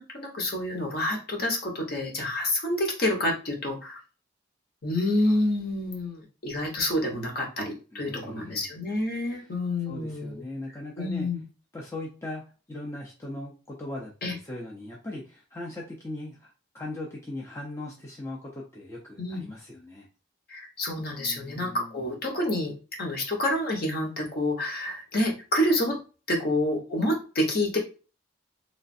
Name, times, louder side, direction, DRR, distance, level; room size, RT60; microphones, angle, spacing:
voice 1, 0.0-4.0 4.8-10.4 11.0-11.4 14.2-14.3 19.2-19.4 20.5-26.0 26.3-27.8, left 1 dB, 50° left, 0 dB, 0.9 m, -28 dB
voice 2, 7.9-8.7 9.3-9.5 9.9-11.3 11.7-12.4 12.7-20.1 21.1-22.0, left 1 dB, 15° left, -4 dB, 0.5 m, -39 dB
3.1 x 2.4 x 2.6 m, 0.34 s
head